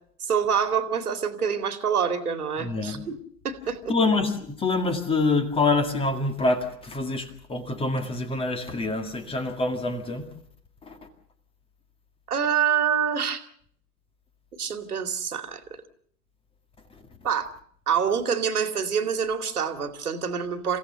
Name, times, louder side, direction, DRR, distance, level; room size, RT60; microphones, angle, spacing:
voice 1, 0.2-3.2 3.4-3.8 12.3-13.4 14.6-15.6 17.2-17.5 17.9-20.8, right 7 dB, 65° right, 8 dB, 2.6 m, -26 dB
voice 2, 2.6-3.0 3.9-10.3 10.9-11.0, left 3 dB, 10° left, 7 dB, 2.0 m, -26 dB
28.0 x 16.5 x 6.8 m, 0.64 s
figure-of-eight pair, 105°, 48 cm